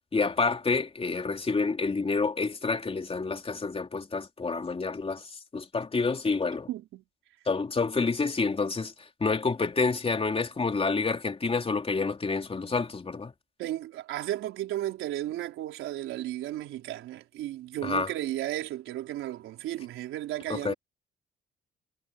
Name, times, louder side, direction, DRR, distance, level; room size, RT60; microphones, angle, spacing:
voice 1, 0.1-5.2 5.5-6.7 7.5-8.9 9.2-13.3 17.8-18.1 20.5-20.7, left 4 dB, 30° left, 3.4 m, -28 dB
voice 2, 6.7-7.0 13.6-20.7, right 13 dB, 90° right, 4.4 m, -34 dB
cardioid pair, 90°, 20 cm